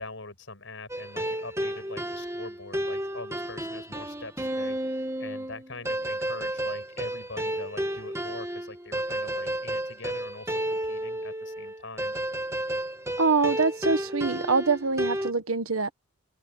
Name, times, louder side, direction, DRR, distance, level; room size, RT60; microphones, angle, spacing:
voice 1, 0.0-12.1, left 3 dB, 60° left, 6.3 m, -43 dB
sound 1, 0.9-15.3, right 1 dB, 15° right, 1.8 m, -32 dB
voice 2, 13.2-15.9, right 4 dB, 75° right, 1.5 m, -24 dB
open air
head